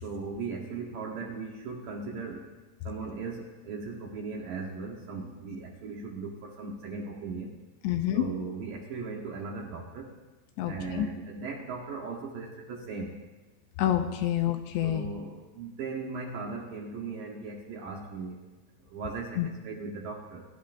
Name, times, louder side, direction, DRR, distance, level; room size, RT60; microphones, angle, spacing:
voice 1, 0.0-2.5 2.8-7.5 8.1-10.1 10.6-13.2 14.8-18.4 18.8-20.4, right 4 dB, 65° right, -1 dB, 2.4 m, -38 dB
voice 2, 7.8-8.3 10.6-11.1 13.8-15.1 19.4-19.5, left 12 dB, 80° left, 6 dB, 2.7 m, -27 dB
21.5 x 12.0 x 2.6 m, 1.2 s
omnidirectional pair, 5.2 m